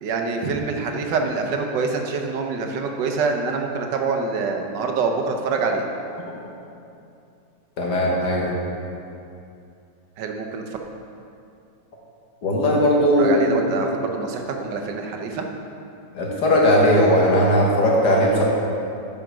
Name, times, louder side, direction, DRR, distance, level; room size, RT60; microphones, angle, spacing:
voice 1, 0.0-5.9 10.2-10.6 13.2-15.5, right 4 dB, 80° right, 3 dB, 1.5 m, -25 dB
voice 2, 7.8-8.5 12.4-13.5 16.1-18.4, equal, 70° left, -2 dB, 2.1 m, -18 dB
9.0 x 5.8 x 6.2 m, 2.6 s
omnidirectional pair, 1.9 m